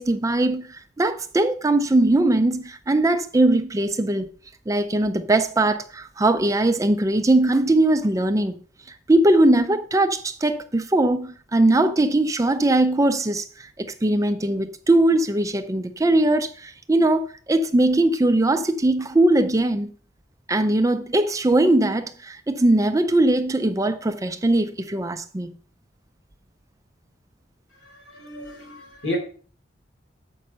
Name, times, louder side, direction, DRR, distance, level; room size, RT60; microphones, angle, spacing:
voice 1, 0.0-4.3 4.7-8.6 9.1-19.9 20.5-25.5, right 2 dB, 15° right, 0.5 m, -20 dB
voice 2, 27.7-29.2, left 2 dB, 80° left, 3.8 m, -33 dB
7.6 x 5.4 x 5.6 m
head